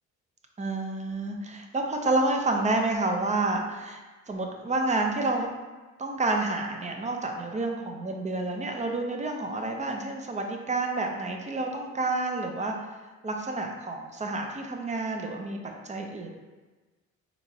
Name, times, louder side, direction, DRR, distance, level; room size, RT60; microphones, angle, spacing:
voice 1, 0.6-5.6 6.0-12.8 13.2-15.6 15.8-16.3, right 2 dB, 25° right, 2 dB, 0.5 m, -29 dB
4.2 x 2.9 x 2.7 m, 1.3 s
cardioid pair, 90°, 30 cm